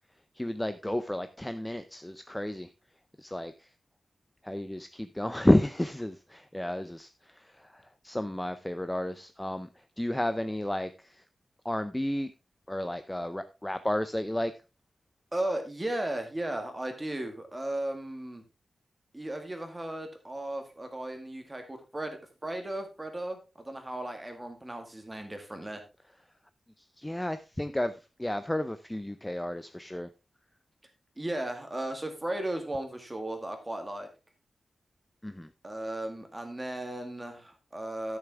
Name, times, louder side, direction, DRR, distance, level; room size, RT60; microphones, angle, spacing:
voice 1, 0.4-2.7 3.2-3.7 4.4-11.2 11.6-12.3 12.7-14.5 26.8-30.1 35.2-35.5, left 1 dB, 10° left, 10 dB, 0.4 m, -31 dB
voice 2, 15.3-18.4 19.1-25.8 31.2-34.1 35.6-38.2, right 1 dB, 15° right, 5 dB, 1.9 m, -36 dB
12.5 x 6.8 x 3.5 m, 0.29 s
wide cardioid pair, 170°, 0 cm